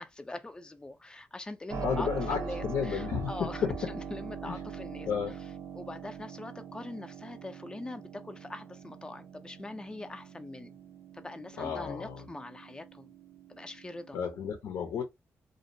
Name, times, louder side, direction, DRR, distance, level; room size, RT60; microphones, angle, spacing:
voice 1, 0.0-5.1 5.7-10.8 11.1-13.1 13.5-14.2, left 2 dB, 15° left, 0.4 m, -42 dB
Keyboard (musical), 1.7-14.4, right 6 dB, 85° right, 0.6 m, -43 dB
voice 2, 1.8-3.9 4.4-4.6 5.1-5.4 11.6-12.2 14.1-15.0, left 7 dB, 85° left, 0.6 m, -32 dB
2.6 x 2.0 x 2.6 m
cardioid pair, 100°, 5 cm